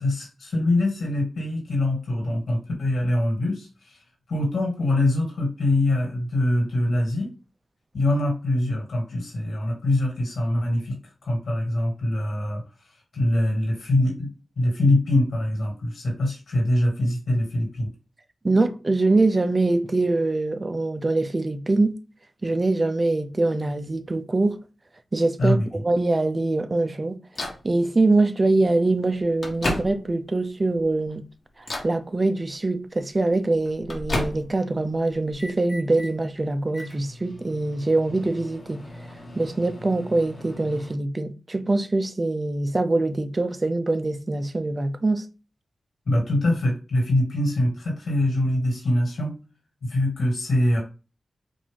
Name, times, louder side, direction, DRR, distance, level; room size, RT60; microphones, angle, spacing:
voice 1, 0.0-4.0 4.3-7.3 7.9-11.0 11.2-17.9 25.4-25.7 46.1-49.3 49.8-50.8, left 1 dB, 75° left, 2.4 m, -24 dB
voice 2, 18.4-21.9 22.4-24.6 25.1-27.2 27.6-31.2 31.8-38.8 39.4-45.3, right 2 dB, 35° right, 0.6 m, -23 dB
Microwave oven, 27.4-27.7 28.6-28.7 29.2-30.3 30.8-31.2 31.6-32.0 33.2-34.7 35.1-36.1 36.7-40.9, left 1 dB, 55° left, 1.4 m, -34 dB
4.9 x 2.7 x 3.7 m
cardioid pair, 65°, 0 cm